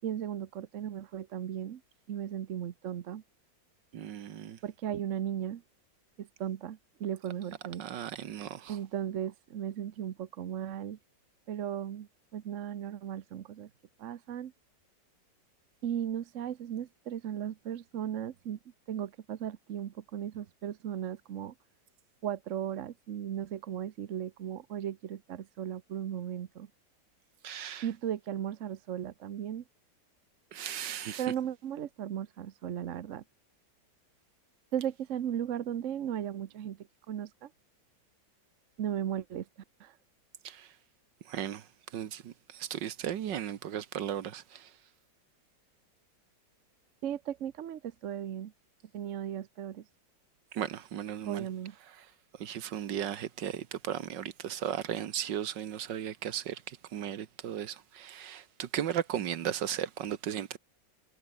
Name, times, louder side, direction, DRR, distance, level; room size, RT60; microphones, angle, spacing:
voice 1, 0.0-1.8 2.1-3.2 4.6-5.6 6.2-7.8 8.7-11.0 11.5-13.7 14.0-14.5 15.8-18.6 18.9-21.5 22.2-26.7 27.8-29.6 31.2-33.2 34.7-37.5 38.8-39.5 39.8-40.0 47.0-48.5 48.9-49.8 51.3-51.7, right 10 dB, 55° right, 0.9 m, -36 dB
voice 2, 3.9-4.6 7.8-8.8 27.4-27.9 30.5-31.2 40.4-40.7 41.2-44.7 50.5-51.5 52.4-60.6, right 10 dB, 70° right, 1.7 m, -36 dB
omnidirectional pair, 2.0 m